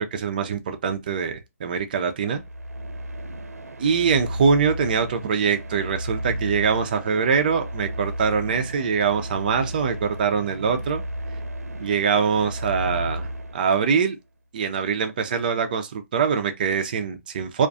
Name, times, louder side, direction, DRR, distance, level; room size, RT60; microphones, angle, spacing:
voice 1, 0.1-2.4 3.8-11.0 11.8-14.2 14.5-17.7, right 6 dB, 35° right, 0.4 m, -23 dB
sound 1, 2.3-14.0, equal, 85° right, 0.6 m, -33 dB
2.4 x 2.3 x 2.4 m
hypercardioid pair, 150°, 8 cm